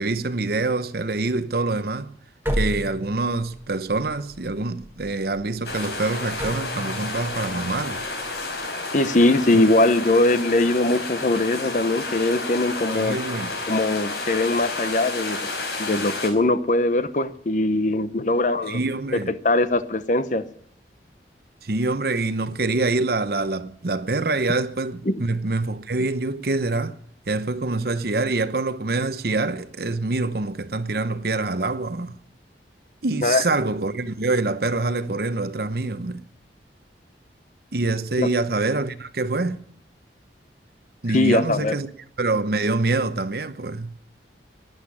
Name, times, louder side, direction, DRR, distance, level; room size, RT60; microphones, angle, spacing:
voice 1, 0.0-2.1 2.5-8.0 9.5-9.6 12.9-13.5 18.7-19.3 21.6-27.0 27.3-32.2 33.0-36.2 37.7-39.6 41.0-41.9 42.2-43.9, right 3 dB, 55° right, 0.9 m, -25 dB
sound 1, 2.4-8.7, equal, 10° right, 1.3 m, -33 dB
sound 2, 5.6-16.3, left 3 dB, 70° left, 4.7 m, -31 dB
voice 2, 8.9-13.2 13.7-15.5 15.8-18.8 19.1-20.4 25.1-25.2 33.2-33.4 38.2-38.3 41.1-41.8, left 2 dB, 45° left, 0.9 m, -21 dB
12.0 x 10.5 x 9.7 m
head